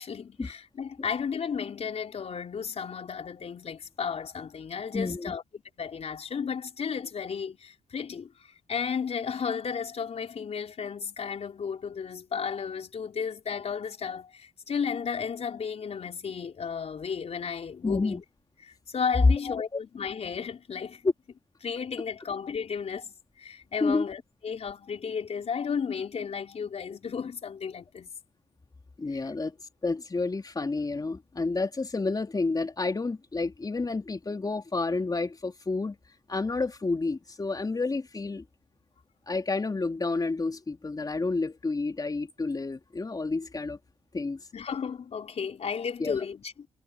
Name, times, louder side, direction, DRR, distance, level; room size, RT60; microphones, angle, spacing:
voice 1, 0.0-5.4 5.8-18.2 18.6-21.1 21.6-28.1 29.1-29.3 44.5-46.7, left 6 dB, 55° left, 4.9 m, -34 dB
voice 2, 4.9-5.3 17.8-18.2 19.5-19.6 23.8-24.0 29.0-29.5 29.8-36.0 36.3-38.4 39.3-43.8 44.1-44.4 46.0-46.2, left 3 dB, 30° left, 3.4 m, -30 dB
supercardioid pair, 65°, 13 cm